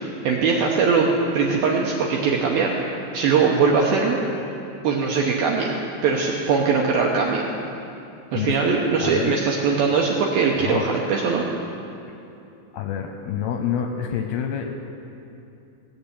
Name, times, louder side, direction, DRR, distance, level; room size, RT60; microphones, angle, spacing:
voice 1, 0.2-1.1 1.3-2.7 3.1-4.2 4.8-5.8 6.0-7.4 8.3-11.4, right 5 dB, 80° right, -1 dB, 2.2 m, -21 dB
voice 2, 8.3-9.4 10.6-10.9 12.7-14.7, left 8 dB, 80° left, 4 dB, 2.4 m, -27 dB
17.5 x 7.3 x 8.2 m, 2.8 s
omnidirectional pair, 5.4 m